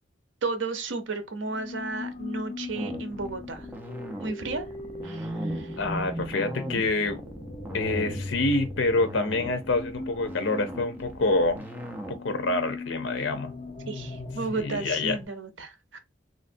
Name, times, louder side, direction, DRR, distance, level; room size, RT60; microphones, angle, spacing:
voice 1, 0.4-3.7 4.2-4.7 5.0-5.8 13.9-16.0, right 3 dB, 75° right, 0.7 m, -33 dB
sound 1, 1.5-15.2, left 2 dB, 30° left, 0.7 m, -38 dB
sound 2, 2.8-12.2, equal, 10° right, 0.6 m, -39 dB
voice 2, 5.8-7.2 7.7-11.6 12.1-13.5 14.5-15.2, left 2 dB, 80° left, 0.6 m, -27 dB
3.2 x 2.5 x 2.5 m
head